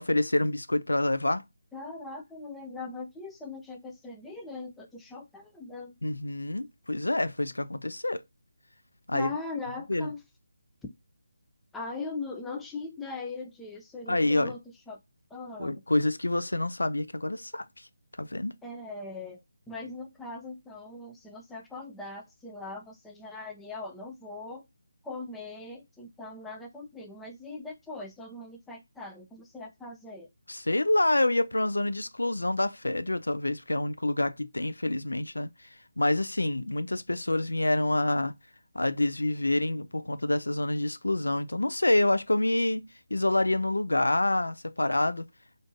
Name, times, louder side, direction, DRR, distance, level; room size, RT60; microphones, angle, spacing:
voice 1, 0.0-1.4 6.0-8.2 9.1-9.3 9.9-10.1 14.1-14.5 15.6-17.6 18.2-18.5 30.5-35.5 36.0-38.3 38.7-45.3, left 2 dB, 85° left, 0.4 m, -27 dB
voice 2, 1.7-6.0 9.1-10.2 11.7-14.6 14.9-15.0 15.3-15.8 18.6-19.4 19.7-24.6 25.0-30.3, left 3 dB, 5° left, 0.4 m, -40 dB
3.5 x 2.6 x 2.5 m
figure-of-eight pair, 155°, 0 cm